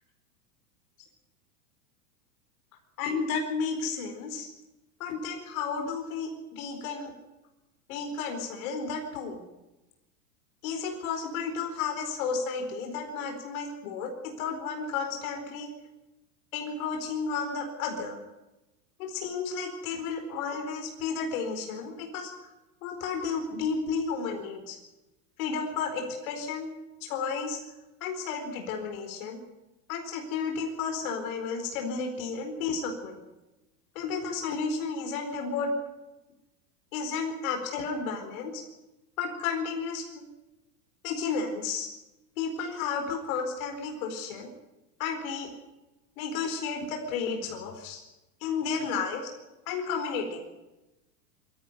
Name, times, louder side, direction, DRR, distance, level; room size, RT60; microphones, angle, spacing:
voice 1, 3.0-4.5 5.0-7.1 7.9-9.4 10.6-14.1 14.4-15.7 16.5-18.2 19.0-22.3 22.8-24.8 25.4-26.7 27.0-27.6 28.0-29.4 29.9-33.2 33.9-35.7 36.9-38.6 39.2-40.2 41.0-41.9 42.4-44.5 45.0-45.5 46.2-48.0 48.4-49.3 49.7-50.4, left 5 dB, 60° left, 3 dB, 4.6 m, -32 dB
21.5 x 14.5 x 9.7 m, 1.0 s
supercardioid pair, 130°, 47 cm